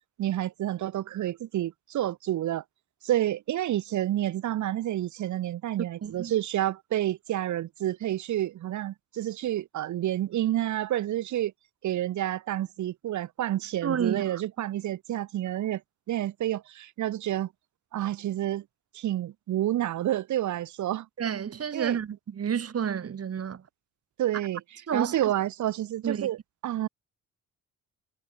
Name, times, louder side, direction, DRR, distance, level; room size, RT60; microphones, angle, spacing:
voice 1, 0.2-2.6 3.0-11.5 11.8-15.8 16.1-17.5 17.9-18.6 18.9-21.1 21.7-22.0 24.2-24.6 24.9-26.4 26.6-26.9, right 13 dB, 70° right, 1.5 m, -29 dB
voice 2, 6.0-6.3 13.8-14.4 21.2-23.6 24.9-25.1 26.0-26.3, right 8 dB, 50° right, 5.7 m, -30 dB
cardioid pair, 90°, 30 cm